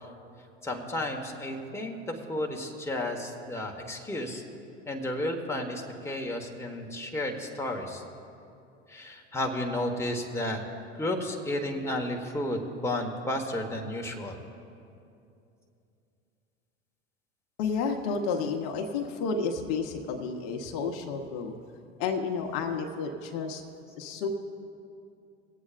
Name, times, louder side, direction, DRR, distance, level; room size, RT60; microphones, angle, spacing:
voice 1, 0.6-4.4 4.9-8.0 8.9-10.6 10.9-14.4, left 1 dB, 10° left, 1 dB, 1.4 m, -32 dB
voice 2, 17.6-21.5 22.0-23.6 24.0-24.3, left 5 dB, 65° left, 4 dB, 1.1 m, -31 dB
24.5 x 8.4 x 2.5 m, 2.6 s
hypercardioid pair, 80°, 33 cm